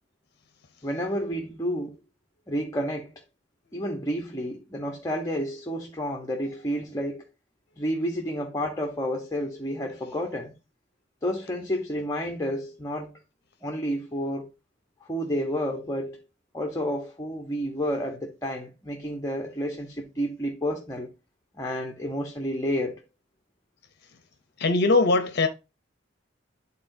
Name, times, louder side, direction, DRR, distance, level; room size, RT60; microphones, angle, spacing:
voice 1, 0.8-2.0 2.5-3.1 3.7-7.2 7.8-10.5 11.2-13.1 13.6-14.5 15.0-16.2 16.5-21.1 21.5-23.0, equal, 15° left, 0.9 m, -30 dB
voice 2, 24.6-25.5, left 3 dB, 60° left, 0.7 m, -21 dB
11.0 x 3.9 x 2.7 m
head